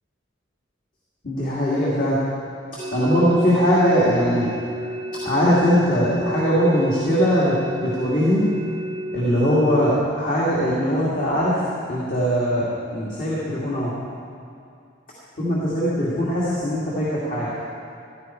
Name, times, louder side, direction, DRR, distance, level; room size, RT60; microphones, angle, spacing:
voice 1, 1.2-2.2 2.9-4.5 5.2-8.4 9.1-11.6 11.9-12.7 12.9-13.9 15.4-17.5, equal, 45° left, -8 dB, 2.4 m, -20 dB
sound 1, 2.8-10.0, right 1 dB, 25° right, 0.4 m, -31 dB
15.0 x 12.5 x 4.6 m, 2.4 s
head